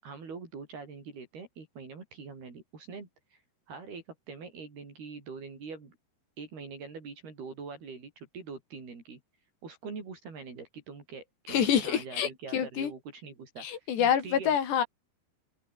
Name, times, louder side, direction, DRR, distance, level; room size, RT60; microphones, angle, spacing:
voice 1, 0.0-3.4 3.7-6.0 6.4-9.2 9.6-14.6, right 4 dB, 65° right, 8.0 m, -44 dB
voice 2, 11.5-12.9 13.6-14.8, left 8 dB, 85° left, 5.3 m, -27 dB
omnidirectional pair, 4.8 m